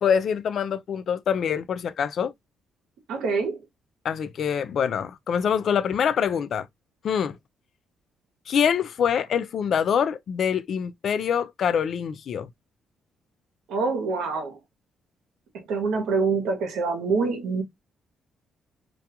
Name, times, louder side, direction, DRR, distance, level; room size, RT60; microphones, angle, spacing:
voice 1, 0.0-2.3 4.0-6.7 7.0-7.4 8.5-12.5, left 7 dB, 60° left, 0.3 m, -25 dB
voice 2, 3.1-3.6 13.7-14.6 15.7-17.6, right 4 dB, 85° right, 0.8 m, -25 dB
2.3 x 2.3 x 2.7 m
cardioid pair, 90°, 0 cm